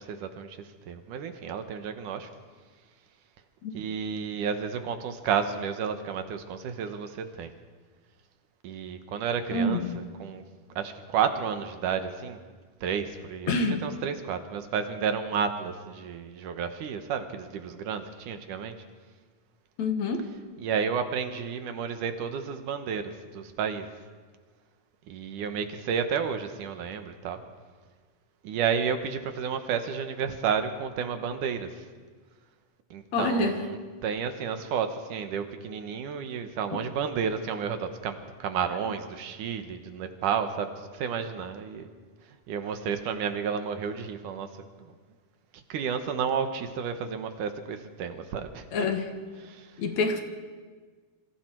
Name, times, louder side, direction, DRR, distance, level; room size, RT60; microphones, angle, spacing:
voice 1, 0.0-2.3 3.7-7.5 8.6-10.4 10.8-12.4 12.8-18.8 20.6-23.9 25.1-27.4 28.4-31.8 32.9-33.8 34.0-41.9 42.5-44.5 44.8-44.9 45.5-48.9 49.4-49.7, right 7 dB, 75° right, 8 dB, 2.8 m, -31 dB
voice 2, 9.5-10.0 13.5-13.8 19.8-20.3 33.1-33.6 48.7-49.1 49.8-50.2, left 2 dB, 60° left, 6 dB, 2.6 m, -27 dB
27.0 x 24.0 x 4.6 m, 1.5 s
omnidirectional pair, 3.7 m